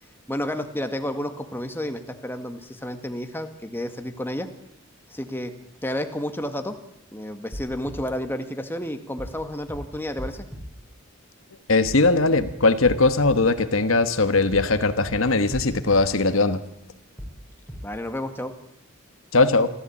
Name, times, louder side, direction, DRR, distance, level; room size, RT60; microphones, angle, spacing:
voice 1, 0.3-4.5 5.1-5.5 5.8-6.8 7.1-10.5 17.8-18.5, left 1 dB, 10° left, 7 dB, 1.8 m, -31 dB
sound 1, 7.5-8.0 9.2-9.4 9.7-9.8 10.2-10.6 11.9-12.1 12.4-12.5 12.8-13.3 14.5-14.7 15.0-15.1 15.5-16.0 17.2-17.4 17.7-17.8, equal, 5° right, 6.2 m, -36 dB
voice 2, 11.7-16.6 19.3-19.7, left 3 dB, 70° left, 11 dB, 1.3 m, -20 dB
27.5 x 14.0 x 8.6 m, 0.84 s
head